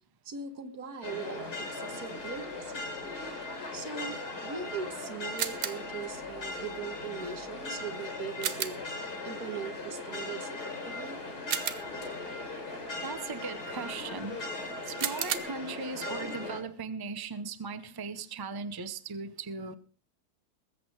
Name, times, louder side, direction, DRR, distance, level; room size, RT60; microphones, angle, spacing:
voice 1, 0.3-2.8 3.7-8.8 9.2-11.2, right 6 dB, 70° right, 9 dB, 2.0 m, -40 dB
sound 1, 1.0-16.6, left 3 dB, 80° left, 4.1 m, -39 dB
sound 2, 5.4-6.0 8.4-9.0 11.5-12.2 15.0-15.4, right 9 dB, 85° right, 1.5 m, -33 dB
voice 2, 13.0-19.7, right 4 dB, 20° right, 12 dB, 0.6 m, -38 dB
20.5 x 8.4 x 4.8 m, 0.39 s
omnidirectional pair, 1.7 m